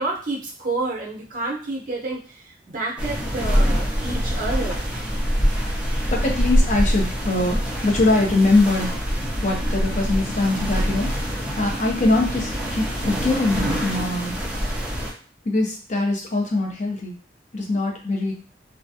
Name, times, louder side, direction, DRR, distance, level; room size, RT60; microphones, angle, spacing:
voice 1, 0.0-4.8, right 2 dB, 50° right, -3 dB, 0.7 m, -29 dB
sound 1, 3.0-15.1, equal, 5° right, 0.5 m, -24 dB
voice 2, 6.1-9.1 9.4-11.1 11.5-14.3 15.4-17.2 17.5-18.3, left 2 dB, 45° left, 0 dB, 0.5 m, -22 dB
2.4 x 2.1 x 2.6 m, 0.40 s
head